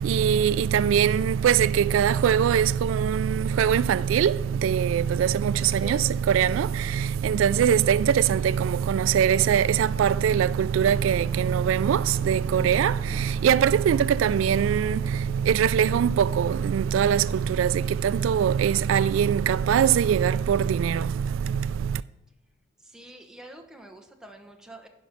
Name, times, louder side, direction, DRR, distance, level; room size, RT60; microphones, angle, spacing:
voice 1, 0.0-22.0, right 8 dB, 85° right, 0.3 m, -22 dB
sound 1, 4.9-5.0 8.1-16.9 17.2-18.0, left 1 dB, 55° left, 1.7 m, -48 dB
voice 2, 5.7-6.0 22.8-24.9, right 1 dB, 5° right, 0.9 m, -45 dB
10.5 x 5.3 x 5.8 m
head